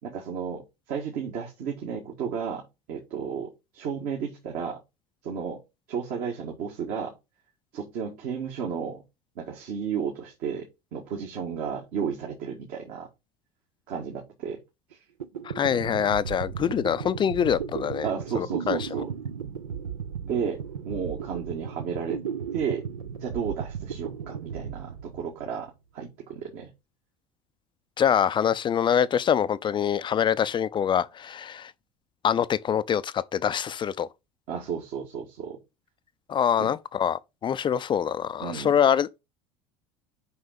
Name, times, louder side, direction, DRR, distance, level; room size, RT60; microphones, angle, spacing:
voice 1, 0.0-4.8 5.2-5.6 5.9-7.1 7.7-9.0 9.4-13.1 13.9-14.6 14.9-15.0 18.0-19.1 20.2-20.6 20.9-22.2 22.5-22.8 23.2-26.7 34.5-35.6 36.6-36.7 38.4-38.8, right 7 dB, 55° right, 1.9 m, -33 dB
sound 1, 14.9-15.0 15.2-25.7, right 7 dB, 75° right, 0.6 m, -35 dB
voice 2, 15.4-18.1 18.4-18.9 28.0-31.7 32.2-34.1 36.3-39.2, left 8 dB, 25° left, 0.5 m, -25 dB
5.6 x 5.5 x 5.2 m
figure-of-eight pair, 70°, 18 cm